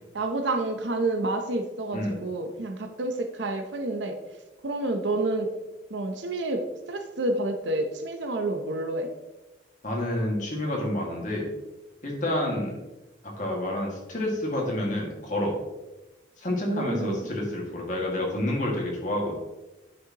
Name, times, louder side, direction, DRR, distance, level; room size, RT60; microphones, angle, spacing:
voice 1, 0.1-4.2 4.6-5.5 5.9-6.6 6.9-9.1 16.6-17.3, right 2 dB, 75° right, 6 dB, 0.7 m, -29 dB
voice 2, 9.8-11.5 12.0-12.8 13.2-15.6 16.4-19.4, left 1 dB, 40° left, -2 dB, 2.0 m, -29 dB
9.4 x 6.4 x 2.9 m, 1.0 s
head